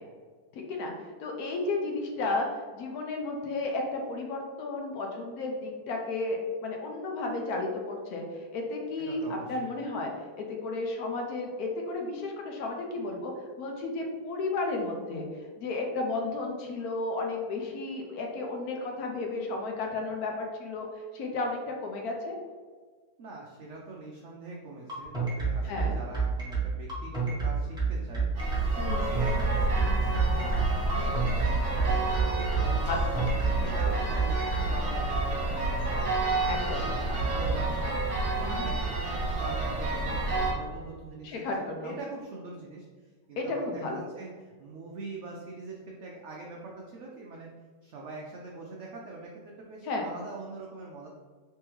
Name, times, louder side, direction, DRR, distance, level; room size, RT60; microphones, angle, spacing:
voice 1, 0.5-10.1 10.4-13.3 13.6-15.3 15.6-20.9 21.1-22.3 25.6-25.9 28.8-29.2 32.9-33.0 33.6-33.7 36.5-36.8 38.3-38.7 41.2-41.9 43.4-44.0 49.8-50.1, left 3 dB, 70° left, 2 dB, 1.0 m, -33 dB
voice 2, 9.0-9.7 23.2-28.3 28.8-32.8 33.4-37.9 38.3-42.9 43.3-47.5 47.8-51.1, right 3 dB, 85° right, -2 dB, 0.6 m, -43 dB
sound 1, 24.9-34.7, right 5 dB, 5° right, 1.1 m, -28 dB
sound 2, 28.4-40.5, right 2 dB, 50° right, 1.0 m, -29 dB
3.5 x 3.3 x 3.0 m, 1.6 s
omnidirectional pair, 1.8 m